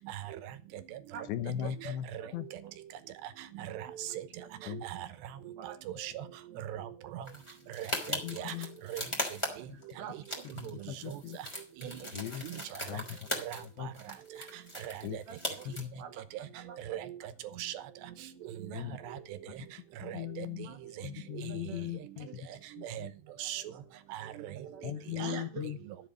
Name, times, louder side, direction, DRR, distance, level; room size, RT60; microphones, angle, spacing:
voice 1, 1.3-2.1 2.3-2.5 4.7-4.9 8.1-8.7 9.7-9.8 10.7-11.4 12.1-12.4 12.9-13.3 13.6-13.9 15.0-15.2 15.7-15.9 18.7-19.0 20.0-20.7 21.0-22.5 22.8-23.1 24.8-25.8, left 11 dB, 90° left, 14 dB, 3.1 m, -38 dB
voice 2, 1.8-2.3 2.6-2.7 4.4-4.5 5.6-5.8 8.3-8.5 9.5-10.4 10.9-11.1 11.8-12.1 12.7-12.8 15.3-15.7 16.0-16.8 18.7-18.9 20.6-21.1 21.4-21.9 22.2-22.4 23.7-24.2 24.7-24.9 25.1-25.7, right 7 dB, 65° right, 6 dB, 2.2 m, -47 dB
voice 3, 3.6-3.9 4.1-4.2 4.8-5.1 5.6-5.7 6.0-6.2 6.7-7.2 7.7-8.5 8.9-9.0 10.6-10.7 11.1-11.2 11.8-12.0 13.5-13.6 14.8-14.9 16.9-17.1 17.6-17.7 18.7-19.2 20.1-20.5 22.8-23.1 23.4-23.6 24.1-24.5, right 11 dB, 85° right, 11 dB, 3.2 m, -39 dB
sound 1, 7.3-9.9 10.2-13.7 13.9-15.8, equal, 10° left, 2.6 m, -39 dB
12.5 x 7.9 x 5.1 m, 0.35 s
omnidirectional pair, 4.8 m